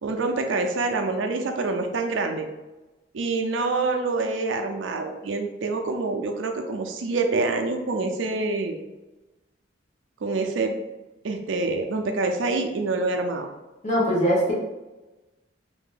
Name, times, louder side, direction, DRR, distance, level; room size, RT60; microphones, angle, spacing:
voice 1, 0.0-2.5 3.1-8.8 10.2-10.7 11.2-13.5, right 3 dB, 80° right, 4 dB, 0.5 m, -26 dB
voice 2, 13.8-14.5, equal, 40° left, -5 dB, 1.0 m, -21 dB
2.8 x 2.6 x 3.8 m, 1.1 s
head